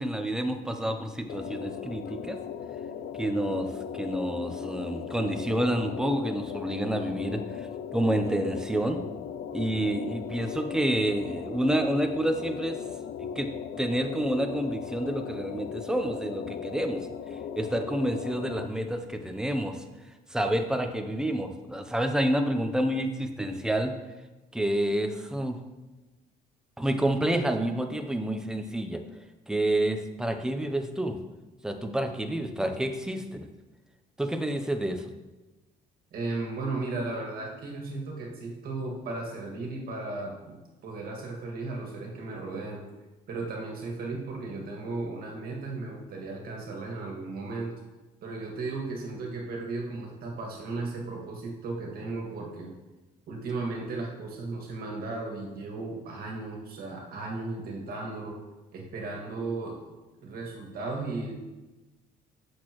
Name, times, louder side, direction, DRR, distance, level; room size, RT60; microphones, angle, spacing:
voice 1, 0.0-2.4 3.1-3.7 3.9-9.0 9.5-12.8 13.2-13.5 13.8-17.1 17.6-19.8 20.3-23.9 24.5-25.6 26.8-29.0 29.5-31.2 31.6-33.4 34.2-35.1, right 1 dB, 5° right, 5 dB, 0.7 m, -28 dB
sound 1, 1.3-18.7, left 8 dB, 65° left, 0.4 m, -38 dB
voice 2, 36.1-40.6 40.8-42.8 43.3-47.7 48.2-52.7 53.3-58.4 58.7-59.8 60.2-61.3, right 3 dB, 60° right, -1 dB, 1.9 m, -35 dB
8.0 x 6.4 x 3.0 m, 1.1 s
cardioid pair, 110°, 17 cm